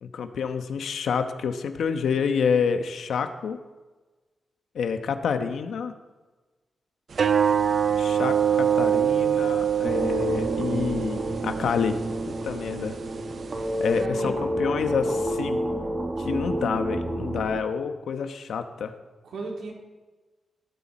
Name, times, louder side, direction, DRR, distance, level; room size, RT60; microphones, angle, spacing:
voice 1, 0.0-3.6 4.7-5.9 8.0-12.0 12.4-13.0 13.8-14.3 14.6-15.6 16.2-18.9, left 6 dB, 80° left, 8 dB, 1.0 m, -28 dB
sound 1, 7.1-14.1, right 8 dB, 50° right, 0.5 m, -25 dB
sound 2, 9.8-17.6, right 1 dB, 30° right, 1.3 m, -29 dB
voice 2, 13.5-14.5 19.2-19.7, right 3 dB, 80° right, -1 dB, 3.3 m, -36 dB
17.0 x 13.0 x 4.3 m, 1.2 s
wide cardioid pair, 135°, 0 cm